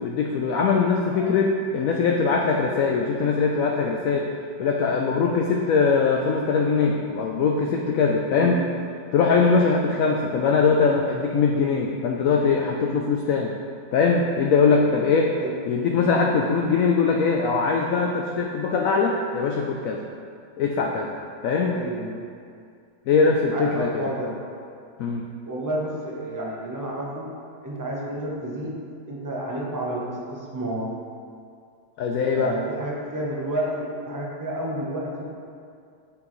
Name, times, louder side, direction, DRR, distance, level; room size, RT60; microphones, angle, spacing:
voice 1, 0.0-4.2 4.6-8.6 9.1-13.5 13.9-15.3 15.7-20.0 20.6-21.1 21.4-21.8 23.1-24.0 25.0-25.3 32.0-32.5, left 5 dB, 75° left, 1 dB, 0.8 m, -21 dB
voice 2, 21.7-22.2 23.5-24.4 25.4-27.3 27.6-30.9 32.3-35.2, right 1 dB, 20° right, -4 dB, 0.5 m, -30 dB
8.0 x 6.1 x 3.1 m, 2.3 s
omnidirectional pair, 1.9 m